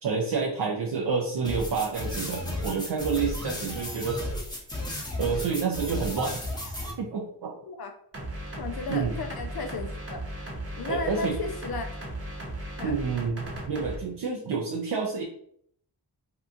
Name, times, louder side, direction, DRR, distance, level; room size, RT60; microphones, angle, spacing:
voice 1, 0.0-4.4 5.2-6.4 7.0-7.6 8.9-9.2 10.9-11.4 12.8-15.2, right 5 dB, 60° right, -1 dB, 0.7 m, -29 dB
sound 1, 1.4-6.9, left 1 dB, 10° left, 1.0 m, -33 dB
sound 2, 8.1-14.0, right 1 dB, 30° right, 1.1 m, -36 dB
voice 2, 8.6-10.2 10.8-11.9 12.8-12.9, left 4 dB, 55° left, 5 dB, 0.5 m, -34 dB
2.8 x 2.3 x 3.7 m, 0.65 s
cardioid pair, 60°, 45 cm